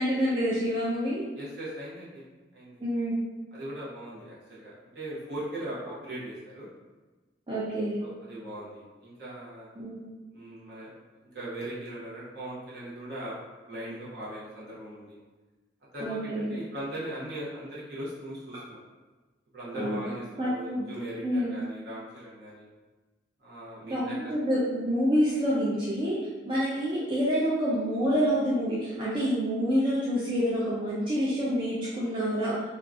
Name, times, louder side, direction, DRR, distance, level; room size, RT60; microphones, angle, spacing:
voice 1, 0.0-1.2 2.8-3.2 7.5-8.0 9.8-10.2 16.0-16.5 19.7-20.0 20.3-20.8 21.2-21.5 23.9-26.2 26.5-32.6, equal, 25° right, -9 dB, 0.4 m, -27 dB
voice 2, 1.3-2.2 2.5-2.8 3.5-6.7 8.0-9.7 10.3-10.9 11.3-13.4 13.7-15.2 15.9-18.8 19.5-22.7 23.4-24.2, right 1 dB, 55° right, -8 dB, 0.9 m, -39 dB
2.7 x 2.3 x 2.4 m, 1.2 s
head